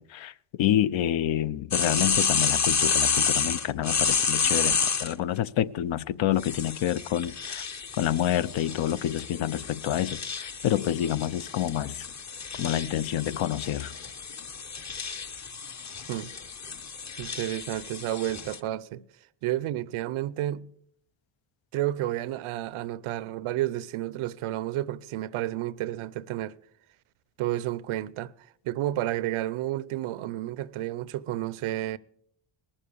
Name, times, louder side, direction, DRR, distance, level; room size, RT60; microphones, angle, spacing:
voice 1, 0.0-7.6 8.0-12.1 12.6-13.9, left 11 dB, 65° left, 0.7 m, -28 dB
sound 1, 1.7-5.1 6.4-18.6, left 5 dB, 35° left, 0.9 m, -30 dB
voice 2, 17.2-19.0 19.4-20.7 21.7-26.5 27.4-28.3 28.6-32.0, right 14 dB, 75° right, 0.7 m, -31 dB
19.0 x 7.2 x 6.9 m
supercardioid pair, 60°, 49 cm